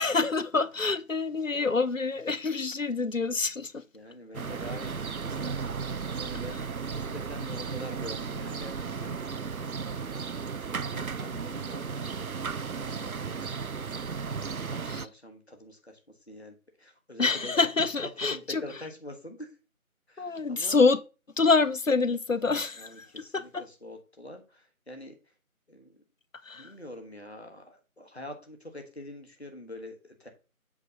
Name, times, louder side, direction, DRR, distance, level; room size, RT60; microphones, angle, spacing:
voice 1, 0.0-3.8 14.9-15.1 17.2-18.6 20.2-21.0 21.4-23.6 26.4-26.7, left 4 dB, 65° left, 0.6 m, -26 dB
voice 2, 3.9-6.6 6.9-9.3 9.9-13.5 14.3-16.0 16.3-17.5 18.2-19.6 20.1-20.8 22.8-25.1 25.7-26.0 26.5-30.3, left 1 dB, 50° left, 1.3 m, -45 dB
sound 1, 4.3-15.1, right 5 dB, 75° right, 0.6 m, -35 dB
8.3 x 3.4 x 5.5 m
figure-of-eight pair, 180°, 43 cm